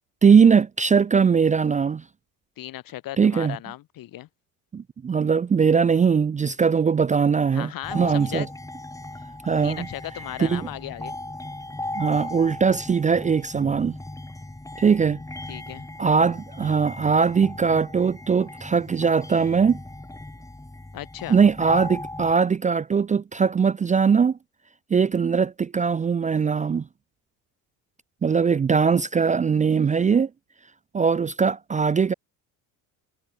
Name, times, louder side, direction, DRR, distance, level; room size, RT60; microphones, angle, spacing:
voice 1, 0.2-2.0 3.2-3.6 4.7-8.5 9.4-9.9 10.4-10.7 11.9-14.0 14.8-15.2 16.0-19.8 21.3-24.4 24.9-26.9 28.2-30.3 30.9-32.1, right 6 dB, 20° right, 0.5 m, -20 dB
voice 2, 2.6-4.3 7.5-8.5 9.6-11.1 15.5-15.9 20.9-21.4, left 14 dB, 60° left, 2.2 m, -36 dB
sound 1, 7.8-22.3, left 2 dB, 10° left, 7.0 m, -37 dB
cardioid pair, 110°, 39 cm